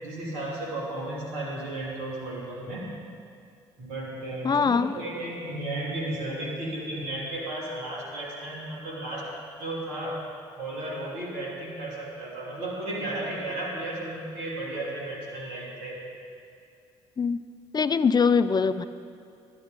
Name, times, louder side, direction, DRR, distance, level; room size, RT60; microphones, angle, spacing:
voice 1, 0.0-2.9 3.8-9.3 9.6-10.2 10.6-16.0, right 1 dB, 80° right, -3 dB, 2.8 m, -34 dB
voice 2, 4.4-5.0 17.2-17.4 17.7-18.9, left 5 dB, 30° left, 13 dB, 0.5 m, -22 dB
12.5 x 10.5 x 5.1 m, 2.4 s
hypercardioid pair, 55°, 13 cm